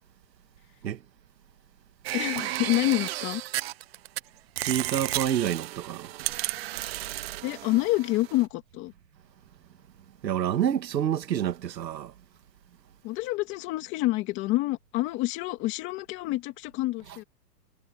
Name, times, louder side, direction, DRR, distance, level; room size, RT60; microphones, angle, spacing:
sound 1, 2.0-4.2 4.6-8.4, right 16 dB, 35° right, 1.5 m, -33 dB
voice 1, 2.1-3.4 7.4-8.9 13.0-17.2, left 18 dB, 25° left, 2.5 m, -28 dB
voice 2, 4.6-6.2 10.2-12.1, right 10 dB, 80° right, 2.4 m, -28 dB
hypercardioid pair, 165°, 50 cm